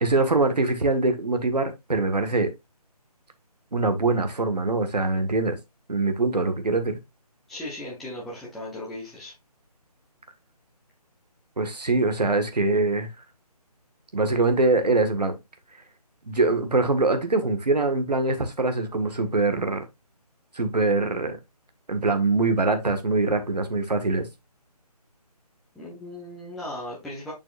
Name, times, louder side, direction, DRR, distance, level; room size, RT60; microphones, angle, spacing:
voice 1, 0.0-2.5 3.7-5.6 5.9-7.0 11.6-13.1 14.1-15.4 16.3-19.8 20.6-21.4 21.9-24.3, right 3 dB, 80° right, 1.7 m, -23 dB
voice 2, 7.5-9.3 25.7-27.3, left 1 dB, ahead, 0.6 m, -37 dB
6.9 x 6.1 x 2.5 m
figure-of-eight pair, 155°, 20 cm